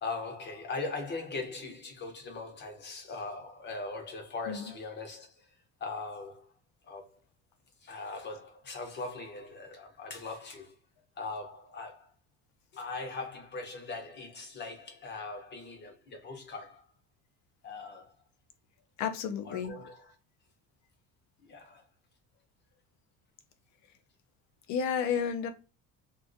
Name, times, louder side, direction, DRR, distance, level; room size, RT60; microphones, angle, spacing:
voice 1, 0.0-5.5 5.8-6.5 6.8-7.2 7.8-10.7 11.2-12.1 12.7-16.9 17.6-18.1 19.4-20.1 21.4-21.8, left 3 dB, 35° left, 0.8 m, -40 dB
voice 2, 19.0-19.7 24.7-25.5, left 7 dB, 65° left, 0.6 m, -31 dB
3.7 x 2.5 x 2.5 m
cardioid pair, 155°, 31 cm